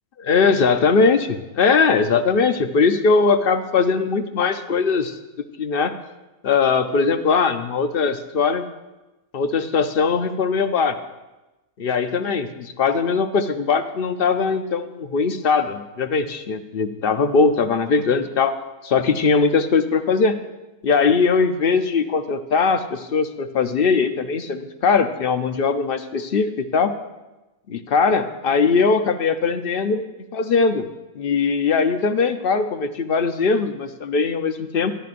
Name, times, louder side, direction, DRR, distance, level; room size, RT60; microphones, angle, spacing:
voice 1, 0.2-5.2 5.6-6.0 6.4-8.6 9.3-11.0 11.8-18.6 18.8-20.4 20.8-26.9 27.7-30.1 30.3-30.9 31.2-34.9, left 5 dB, 50° left, 9 dB, 0.7 m, -20 dB
24.0 x 11.0 x 2.5 m, 1.1 s
omnidirectional pair, 1.5 m